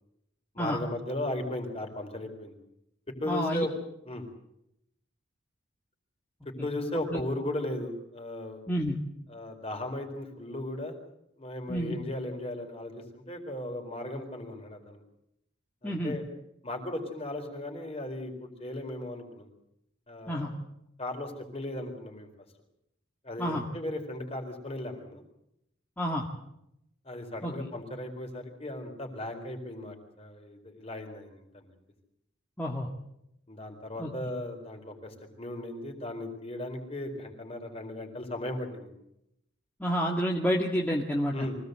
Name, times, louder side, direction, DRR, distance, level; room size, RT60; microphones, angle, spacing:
voice 1, 0.5-2.5 3.1-3.7 4.0-4.3 6.4-8.6 9.3-11.1 11.4-15.0 15.8-16.2 16.6-19.5 20.1-20.5 21.0-22.3 23.2-25.2 27.0-31.7 33.5-38.9 41.3-41.6, left 1 dB, 30° left, 4 dB, 4.3 m, -36 dB
voice 2, 3.3-3.6 7.1-7.2 8.7-9.0 11.7-12.0 15.8-16.1 20.3-20.5 23.4-23.7 26.0-26.3 27.4-27.7 32.6-32.9 34.0-34.1 39.8-41.3, equal, 10° left, -2 dB, 1.9 m, -29 dB
24.5 x 18.0 x 8.1 m, 0.80 s
head